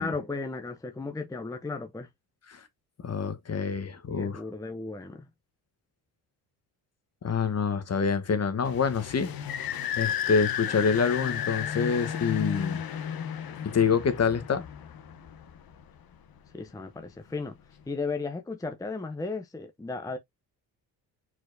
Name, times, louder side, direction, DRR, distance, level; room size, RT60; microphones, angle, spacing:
voice 1, 0.0-2.1 4.0-5.3 16.5-17.6 17.9-20.2, left 3 dB, 10° left, 0.7 m, -35 dB
voice 2, 3.0-4.4 7.2-9.3 10.0-12.8 13.6-14.6, left 6 dB, 35° left, 1.2 m, -26 dB
sound 1, 8.6-16.0, left 9 dB, 55° left, 1.0 m, -33 dB
4.6 x 4.4 x 2.6 m
cardioid pair, 80°, 42 cm